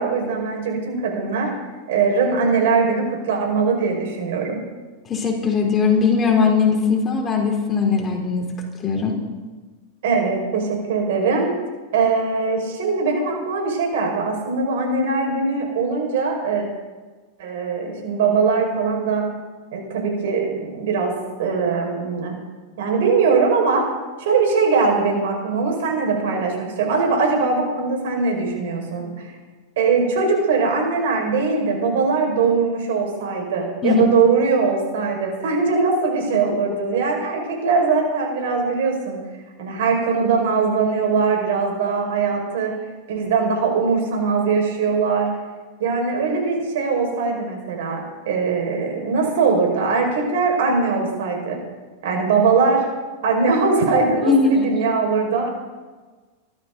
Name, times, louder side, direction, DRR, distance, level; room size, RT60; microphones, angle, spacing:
voice 1, 0.0-1.5 1.9-4.6 10.0-11.5 11.9-16.6 17.4-19.3 19.7-21.1 21.4-22.3 22.8-23.8 24.2-29.3 29.8-39.2 39.6-42.7 43.1-45.3 45.8-48.0 48.3-51.6 52.0-52.8 53.2-55.5, right 4 dB, 75° right, 1 dB, 5.5 m, -21 dB
voice 2, 5.1-8.5 8.8-9.2 33.8-34.0 54.2-54.7, left 5 dB, 20° left, 1 dB, 3.8 m, -19 dB
25.0 x 13.5 x 4.0 m, 1.3 s
supercardioid pair, 130°, 0 cm